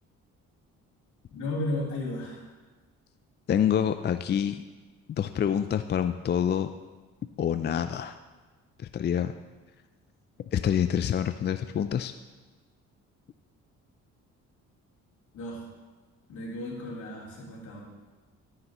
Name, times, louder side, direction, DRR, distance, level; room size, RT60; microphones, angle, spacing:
voice 1, 1.3-2.5 15.3-15.6 16.3-17.8, left 1 dB, 70° left, -5 dB, 3.6 m, -34 dB
voice 2, 3.5-4.6 5.1-6.7 7.4-8.2 8.8-9.3 10.5-12.1, left 9 dB, 35° left, 9 dB, 0.4 m, -27 dB
13.0 x 9.5 x 3.0 m, 1.3 s
cardioid pair, 90°, 30 cm